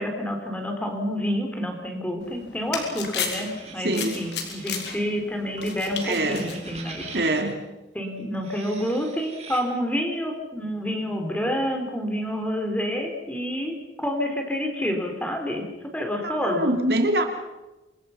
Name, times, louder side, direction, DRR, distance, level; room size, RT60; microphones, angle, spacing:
voice 1, 0.0-7.0 7.9-15.7 15.9-16.8, equal, 10° left, 3 dB, 3.6 m, -28 dB
sound 1, 2.2-7.4, left 6 dB, 70° left, 3.9 m, -35 dB
sound 2, 3.4-4.9 5.9-7.5 8.3-9.6, right 5 dB, 35° right, 3.7 m, -43 dB
voice 2, 3.8-4.2 6.0-6.6 7.1-7.7 16.2-17.2, right 1 dB, 60° right, 5 dB, 2.7 m, -24 dB
27.5 x 23.0 x 5.8 m, 1.0 s
head